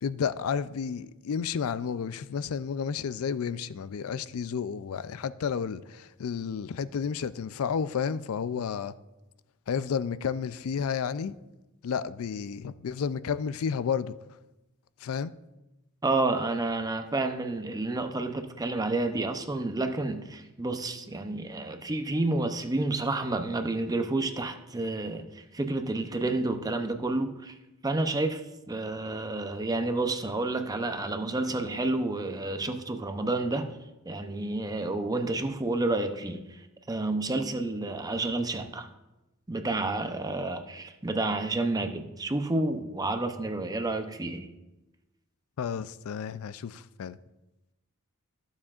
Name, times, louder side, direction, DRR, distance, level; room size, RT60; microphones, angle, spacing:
voice 1, 0.0-8.9 9.7-11.4 11.8-14.1 15.0-15.3 45.6-47.2, left 6 dB, 70° left, 0.4 m, -31 dB
voice 2, 16.0-27.5 27.8-33.7 34.1-36.6 36.9-38.9 39.5-44.5, right 2 dB, 15° right, 0.6 m, -30 dB
14.5 x 7.2 x 2.4 m
head